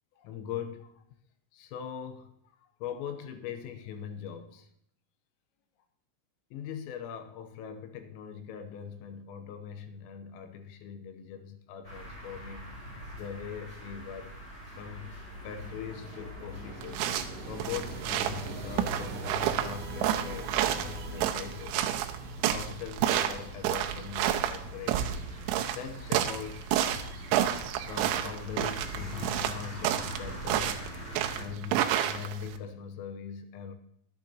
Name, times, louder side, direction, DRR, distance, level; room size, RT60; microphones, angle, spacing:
voice 1, 0.2-1.0 1.5-2.4 2.8-4.7 6.5-12.9 13.1-14.3 14.7-15.2 15.4-17.0 17.5-21.9 22.5-25.2 25.7-26.8 27.8-30.8 31.3-33.7, left 8 dB, 85° left, 7 dB, 3.5 m, -41 dB
sound 1, 11.8-31.4, left 1 dB, 15° left, 6.9 m, -44 dB
sound 2, 14.7-23.6, right 2 dB, 50° right, 2.6 m, -43 dB
sound 3, 16.8-32.6, right 11 dB, 90° right, 3.5 m, -30 dB
24.0 x 9.6 x 2.9 m, 0.71 s
omnidirectional pair, 5.9 m